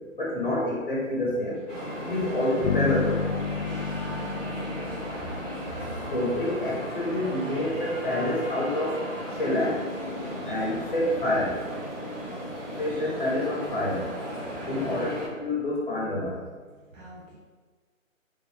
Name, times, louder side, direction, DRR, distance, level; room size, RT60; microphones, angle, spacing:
voice 1, 0.2-1.6 2.1-3.2 6.1-9.0 9.3-9.8 10.5-11.6 12.8-14.1 14.7-16.4, left 1 dB, 40° left, -4 dB, 0.5 m, -27 dB
Snare drum, 1.3-13.2, right 2 dB, 35° right, 1.0 m, -51 dB
sound 1, 1.7-15.3, equal, 5° right, 0.7 m, -35 dB
voice 2, 2.1-2.7 4.1-4.8 14.7-15.2 16.9-17.4, right 1 dB, 70° right, -6 dB, 0.9 m, -44 dB
Bass guitar, 2.6-6.4, left 5 dB, 85° left, 0.6 m, -31 dB
3.4 x 3.3 x 2.6 m, 1.4 s
hypercardioid pair, 160°, 41 cm